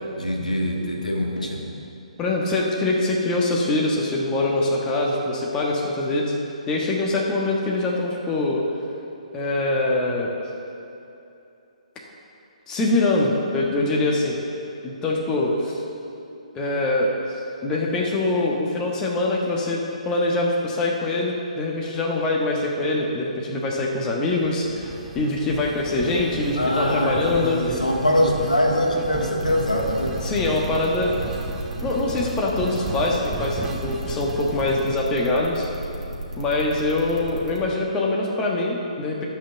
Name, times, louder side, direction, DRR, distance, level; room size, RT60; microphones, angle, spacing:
voice 1, 0.1-1.6 26.6-30.2, left 1 dB, 80° left, 0 dB, 1.7 m, -23 dB
voice 2, 2.2-6.3 6.7-8.6 9.3-10.3 12.7-14.4 14.8-15.8 16.5-17.1 17.6-27.6 29.0-29.1 30.2-31.1 31.8-35.7 36.4-39.2, left 2 dB, 15° left, -2 dB, 1.2 m, -23 dB
sound 1, 24.3-34.9, right 2 dB, 10° right, 0.9 m, -35 dB
sound 2, 29.4-37.6, right 2 dB, 70° right, 2.4 m, -33 dB
12.0 x 5.7 x 7.0 m, 2.8 s
figure-of-eight pair, 130°, 4 cm